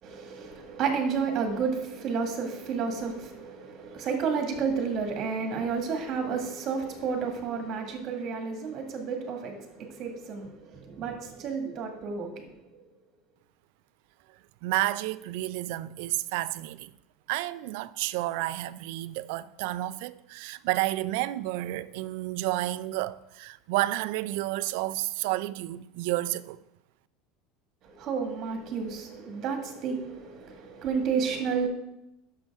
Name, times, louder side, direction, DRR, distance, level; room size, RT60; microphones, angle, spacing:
voice 1, 0.0-12.8 27.8-31.7, right 5 dB, 45° right, 1.9 m, -31 dB
voice 2, 14.6-16.9 17.3-26.6, right 17 dB, 70° right, 0.4 m, -31 dB
11.0 x 6.6 x 3.6 m
supercardioid pair, 135°, 0 cm